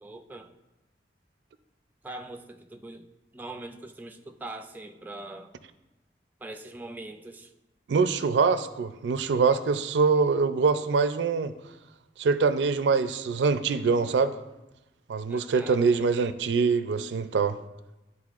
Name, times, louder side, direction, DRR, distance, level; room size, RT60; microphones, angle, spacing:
voice 1, 0.0-0.5 2.0-3.1 3.3-5.5 6.4-7.5 15.3-16.1, right 2 dB, 10° right, 5 dB, 0.3 m, -42 dB
voice 2, 7.9-11.5 12.2-14.3 15.1-17.6, right 5 dB, 80° right, 11 dB, 0.4 m, -24 dB
11.0 x 4.0 x 2.4 m, 0.97 s
head